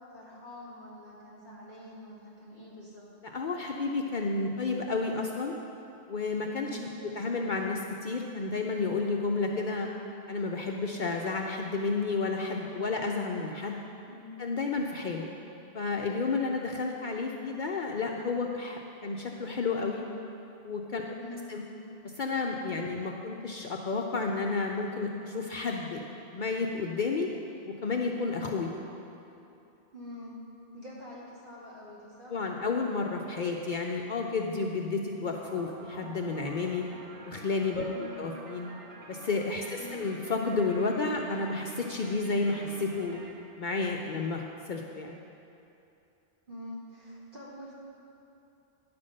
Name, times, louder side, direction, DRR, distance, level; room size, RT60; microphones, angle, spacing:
voice 1, 0.1-3.0 6.6-7.1 14.1-14.3 21.2-21.7 29.9-30.3 30.7-32.4 37.9-38.3 39.8-40.1 46.5-47.7, left 1 dB, 55° right, -7 dB, 2.5 m, -45 dB
voice 2, 3.2-5.5 6.1-6.7 7.0-9.9 10.3-13.8 14.4-15.3 15.7-20.1 20.6-21.1 21.5-21.7 22.0-26.0 26.3-27.3 27.6-28.8 32.3-36.8 37.2-37.9 38.2-38.7 39.1-43.2 43.6-45.2, left 4 dB, 55° left, 1 dB, 0.6 m, -31 dB
sound 1, 35.3-43.3, right 3 dB, 85° right, 1.3 m, -47 dB
10.0 x 5.9 x 6.4 m, 2.8 s
omnidirectional pair, 1.2 m